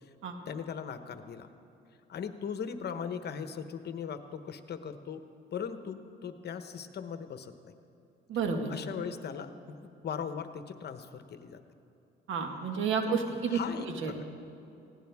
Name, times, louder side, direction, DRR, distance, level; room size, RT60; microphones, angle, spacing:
voice 1, 0.5-1.5 2.1-5.2 5.5-7.7 8.7-11.6 13.0-13.2 13.5-14.2, left 7 dB, 55° left, 9 dB, 1.0 m, -39 dB
voice 2, 8.3-8.7 12.3-13.6 14.0-14.1, right 5 dB, 80° right, 4 dB, 1.7 m, -30 dB
19.5 x 16.5 x 3.5 m, 2.7 s
cardioid pair, 90°, 20 cm